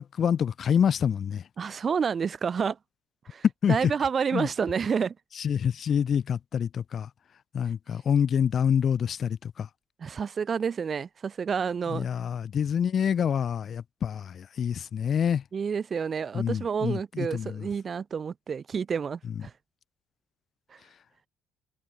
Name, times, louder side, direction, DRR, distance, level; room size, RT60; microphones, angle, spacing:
voice 1, 0.0-1.4 3.6-3.9 4.3-4.5 5.4-7.1 7.5-9.7 11.9-15.4 16.3-17.7, left 8 dB, 45° left, 3.6 m, -27 dB
voice 2, 1.6-2.8 3.3-5.1 10.0-12.1 15.5-19.5, right 6 dB, 40° right, 6.7 m, -29 dB
figure-of-eight pair, 45°, 0 cm